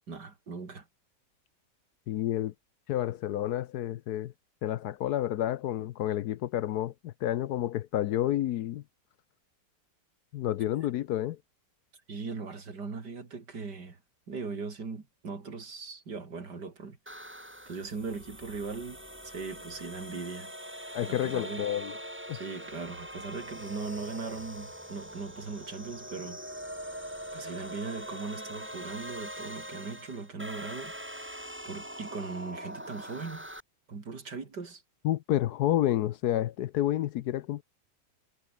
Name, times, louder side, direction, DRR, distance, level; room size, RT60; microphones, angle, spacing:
voice 1, 0.1-0.9 12.1-14.0 14.3-17.0 17.7-19.0 19.2-20.5 21.0-21.7 22.3-26.4 27.3-31.3 31.7-33.5 33.9-34.8, right 4 dB, 70° right, 3.6 m, -39 dB
voice 2, 2.1-2.5 2.9-4.3 4.6-8.8 10.3-11.4 20.9-22.0 22.3-22.4 35.0-37.6, left 12 dB, 70° left, 1.1 m, -30 dB
sound 1, 17.1-33.6, equal, 5° right, 4.9 m, -43 dB
omnidirectional pair, 1.9 m